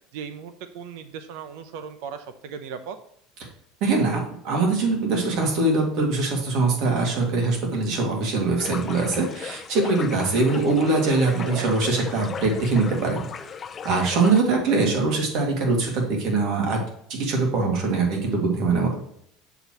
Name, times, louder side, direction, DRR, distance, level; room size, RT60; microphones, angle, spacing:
voice 1, 0.1-3.0 11.4-11.7 14.2-14.3, right 7 dB, 75° right, 10 dB, 0.7 m, -37 dB
voice 2, 3.8-13.2 13.8-16.8 17.1-19.0, right 3 dB, 60° right, 1 dB, 2.2 m, -22 dB
sound 1, 8.6-14.4, left 6 dB, 30° left, 0.5 m, -37 dB
6.9 x 6.7 x 3.0 m, 0.69 s
supercardioid pair, 125°, 0 cm